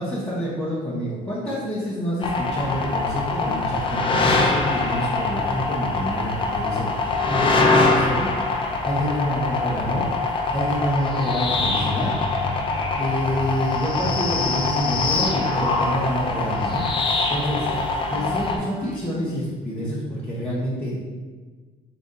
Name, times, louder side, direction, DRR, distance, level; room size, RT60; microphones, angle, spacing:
voice 1, 0.0-8.3 8.8-12.1 13.0-16.9 17.3-17.7 18.1-21.0, equal, 5° left, -11 dB, 0.9 m, -27 dB
sound 1, 2.2-18.6, left 3 dB, 30° left, 0.5 m, -23 dB
sound 2, 11.3-19.3, left 2 dB, 15° right, 1.2 m, -37 dB
3.8 x 2.6 x 3.8 m, 1.4 s
cardioid pair, 110°, 17 cm